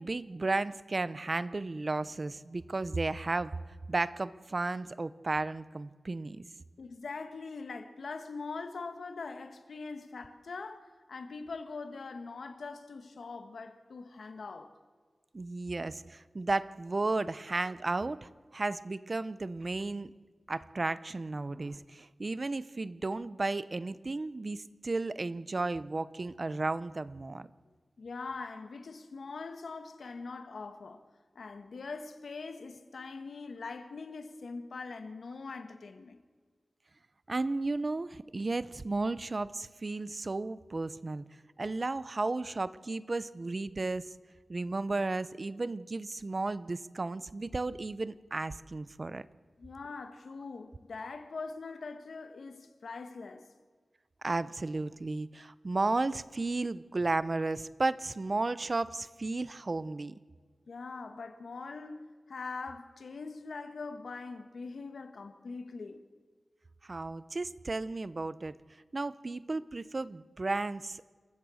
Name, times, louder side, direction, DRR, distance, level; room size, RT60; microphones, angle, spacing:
voice 1, 0.0-3.5 3.9-6.4 15.3-20.1 20.5-27.5 37.3-41.2 41.6-44.1 44.5-49.2 54.2-60.1 66.9-68.5 68.9-71.1, right 3 dB, 40° right, 0.7 m, -34 dB
voice 2, 6.8-14.7 28.0-31.0 31.3-36.2 49.6-53.5 60.7-66.0, left 4 dB, 85° left, 1.6 m, -42 dB
27.5 x 15.0 x 6.4 m
wide cardioid pair, 110°, 0 cm